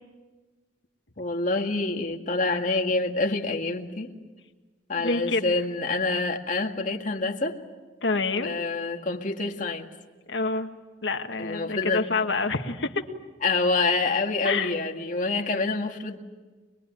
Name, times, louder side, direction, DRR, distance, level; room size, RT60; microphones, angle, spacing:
voice 1, 1.2-4.1 4.9-7.6 8.4-9.9 11.4-12.1 13.4-16.2, left 3 dB, 45° left, 2.0 m, -27 dB
voice 2, 4.9-5.5 8.0-8.5 10.3-10.7 11.0-13.0 14.4-14.7, left 3 dB, 80° left, 1.7 m, -27 dB
25.0 x 22.0 x 9.2 m
head